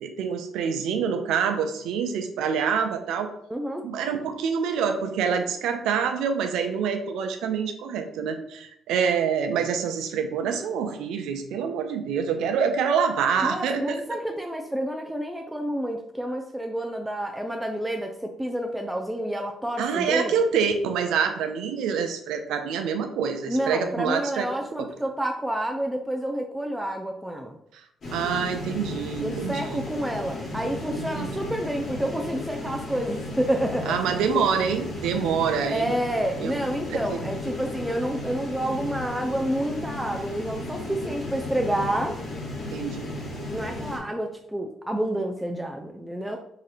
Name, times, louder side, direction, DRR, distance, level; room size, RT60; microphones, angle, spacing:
voice 1, 0.0-3.3 3.8-14.0 19.8-24.5 24.8-24.9 28.1-29.8 31.0-31.4 33.9-35.9 36.4-36.5 36.9-37.2 42.7-43.2, right 6 dB, 85° right, 6 dB, 0.5 m, -26 dB
voice 2, 3.5-3.8 13.4-20.3 23.5-27.6 29.2-34.0 35.7-42.2 43.5-46.4, right 1 dB, 5° right, 2 dB, 0.4 m, -29 dB
sound 1, 28.0-44.0, left 2 dB, 55° left, 1.3 m, -35 dB
3.7 x 2.7 x 3.3 m, 0.74 s
cardioid pair, 90°, 0 cm